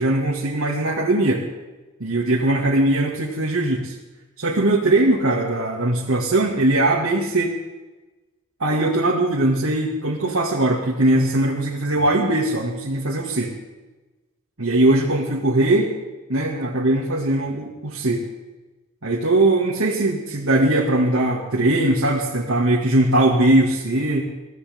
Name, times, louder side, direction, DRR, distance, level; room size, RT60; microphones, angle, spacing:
voice 1, 0.0-1.5 2.0-3.9 4.4-7.5 8.6-13.5 14.6-15.9 16.3-18.3 19.0-24.3, right 1 dB, 80° right, -4 dB, 2.3 m, -20 dB
23.0 x 16.5 x 3.7 m, 1.2 s
head